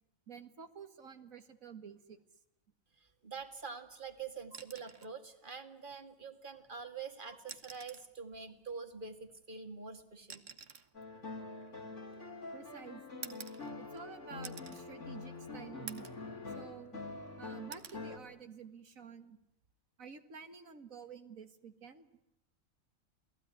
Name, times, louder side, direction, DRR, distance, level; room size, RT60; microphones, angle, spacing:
voice 1, 0.3-2.2 7.3-7.4 12.5-13.4 13.8-16.1 16.5-17.0 17.4-19.4 20.0-22.1, right 6 dB, 85° right, 10 dB, 2.2 m, -50 dB
voice 2, 3.0-10.4, right 5 dB, 40° right, 8 dB, 2.3 m, -46 dB
sound 1, 4.5-5.2 6.6-6.7 7.4-8.2 9.3-12.4 13.2-14.1 14.4-14.9 15.3-15.4 15.9-16.3 16.7-17.3 17.7-18.0 19.5-19.7, right 6 dB, 65° right, 1.7 m, -50 dB
sound 2, 10.9-18.2, left 3 dB, 60° left, 3.5 m, -45 dB
28.5 x 19.0 x 9.8 m, 0.83 s
omnidirectional pair, 1.4 m